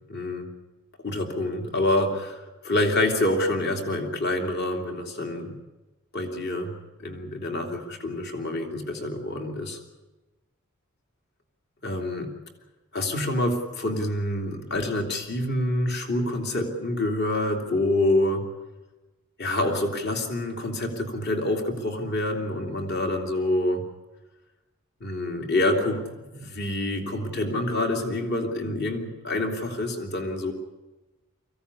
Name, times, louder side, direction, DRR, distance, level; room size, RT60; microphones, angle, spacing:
voice 1, 0.1-0.5 1.0-5.5 6.1-9.8 11.8-12.3 12.9-18.4 19.4-23.8 25.0-26.0 26.3-30.5, left 1 dB, 50° left, 3 dB, 2.8 m, -27 dB
24.0 x 16.0 x 9.7 m, 1.1 s
head